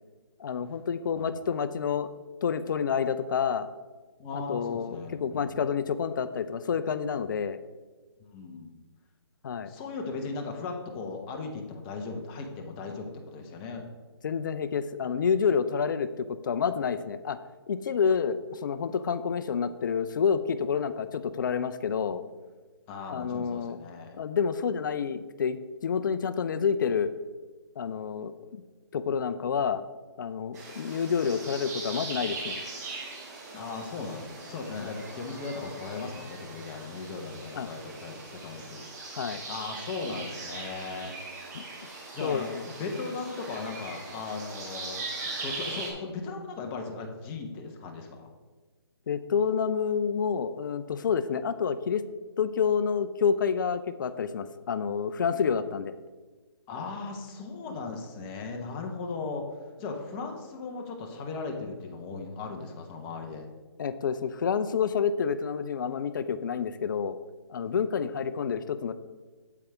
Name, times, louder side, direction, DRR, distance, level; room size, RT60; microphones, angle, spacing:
voice 1, 0.4-2.1 2.4-3.7 4.3-7.6 9.4-9.7 14.2-17.4 17.7-22.2 23.1-23.8 24.1-25.6 25.8-27.1 27.8-28.3 28.9-29.8 30.2-32.6 34.8-34.9 37.5-37.7 39.1-39.4 41.5-41.6 42.2-42.6 49.1-52.0 52.4-55.9 63.8-67.2 67.5-68.9, left 6 dB, 45° left, 13 dB, 0.5 m, -28 dB
voice 2, 4.2-5.6 8.2-8.7 9.7-13.9 22.9-24.1 33.5-39.1 39.5-41.1 42.1-45.1 45.4-48.3 56.7-59.4 59.8-63.5, left 4 dB, 20° left, 2 dB, 0.9 m, -37 dB
sound 1, 30.5-45.9, right 3 dB, 40° right, 2.3 m, -40 dB
8.2 x 8.0 x 3.5 m, 1.3 s
hypercardioid pair, 150°, 14 cm